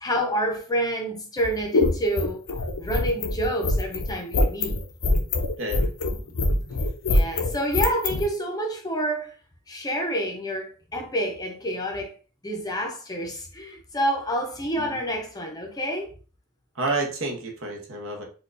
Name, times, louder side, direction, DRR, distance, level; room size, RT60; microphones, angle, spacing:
voice 1, 0.0-2.5 2.8-4.8 7.1-9.3 9.7-12.2 12.4-16.1, equal, 20° left, 0.6 m, -28 dB
sound 1, 1.4-8.2, left 2 dB, 80° left, 0.6 m, -23 dB
voice 2, 5.6-5.9 14.8-15.0 16.7-18.3, right 2 dB, 65° right, 0.9 m, -29 dB
4.3 x 2.3 x 2.5 m
head